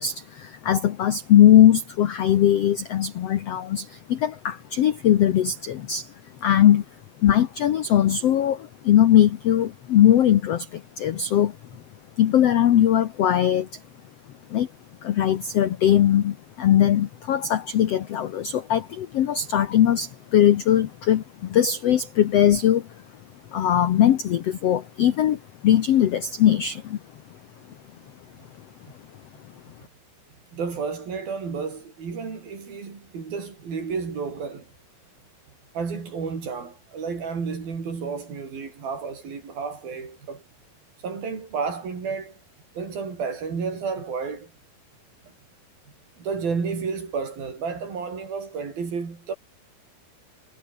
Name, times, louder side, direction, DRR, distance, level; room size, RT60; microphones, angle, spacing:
voice 1, 0.0-6.1 6.4-6.8 7.2-11.8 12.2-13.8 14.5-14.7 15.0-22.9 23.5-27.0, left 11 dB, 80° left, 1.4 m, -20 dB
voice 2, 30.5-34.7 35.7-40.4 41.0-42.4 42.8-44.5 46.2-49.3, right 5 dB, 70° right, 7.1 m, -31 dB
omnidirectional pair, 4.4 m